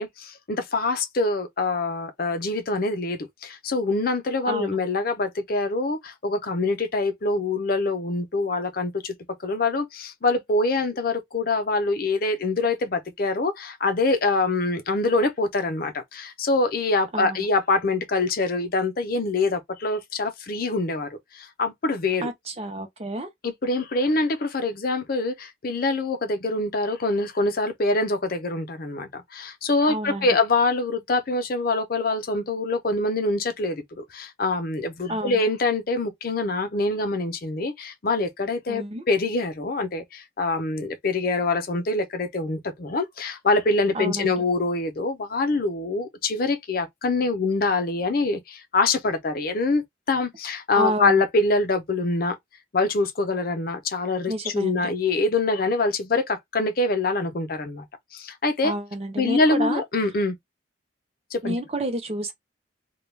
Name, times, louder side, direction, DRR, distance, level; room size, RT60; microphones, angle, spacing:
voice 1, 0.0-9.1 9.4-21.1 21.3-22.3 23.4-49.8 50.1-52.3 52.7-57.8 58.1-58.7 59.2-60.3 61.3-61.5, left 3 dB, 50° left, 0.6 m, -25 dB
voice 2, 4.5-4.8 17.1-17.5 22.2-23.3 29.9-30.4 35.1-35.4 38.7-39.0 43.9-44.3 50.7-51.2 54.3-54.9 58.6-59.8 61.4-62.3, right 1 dB, 30° right, 0.6 m, -29 dB
2.2 x 2.2 x 3.2 m
head